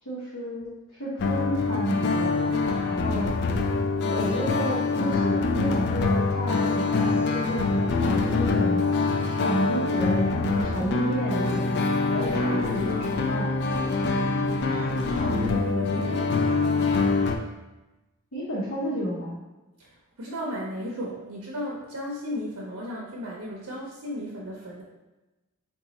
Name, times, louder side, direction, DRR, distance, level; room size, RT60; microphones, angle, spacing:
voice 1, 0.0-2.5 2.8-3.3 4.1-8.8 9.3-11.8 12.1-13.5 18.3-19.4, equal, 75° left, -8 dB, 0.8 m, -31 dB
sound 1, 1.2-17.4, left 3 dB, 50° left, 0.3 m, -25 dB
voice 2, 13.8-16.8 19.8-19.9 20.2-24.8, equal, 85° right, -3 dB, 0.6 m, -35 dB
3.9 x 2.3 x 2.8 m, 1.1 s
head